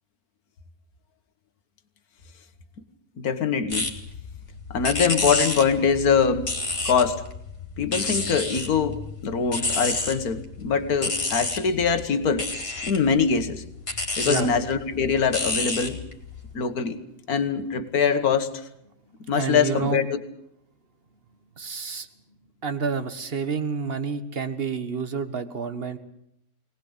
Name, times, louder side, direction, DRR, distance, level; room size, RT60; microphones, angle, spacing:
voice 1, 3.2-3.9 4.7-6.5 6.9-7.2 7.8-12.5 12.8-13.6 14.2-16.0 16.5-17.0 17.3-18.5 19.3-20.2, left 6 dB, 75° left, 9 dB, 1.9 m, -23 dB
sound 1, 3.7-16.5, left 3 dB, 40° left, 2.9 m, -30 dB
voice 2, 19.3-20.0 21.6-22.1 22.6-26.0, right 5 dB, 40° right, 10 dB, 1.6 m, -29 dB
22.5 x 19.0 x 8.1 m, 0.77 s
omnidirectional pair, 1.6 m